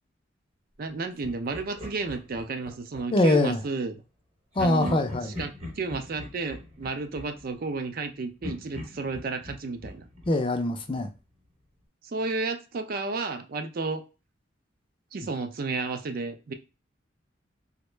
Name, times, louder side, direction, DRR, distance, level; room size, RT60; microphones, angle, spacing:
voice 1, 0.8-3.9 4.6-10.1 12.0-14.0 15.1-16.5, right 3 dB, 50° right, 0.4 m, -32 dB
Laughter, 1.2-3.4 4.5-8.0 8.4-11.2, left 2 dB, 30° right, 1.0 m, -42 dB
voice 2, 3.1-3.6 4.6-5.3 10.3-11.1, left 2 dB, 25° left, 0.4 m, -23 dB
3.6 x 2.1 x 3.1 m
head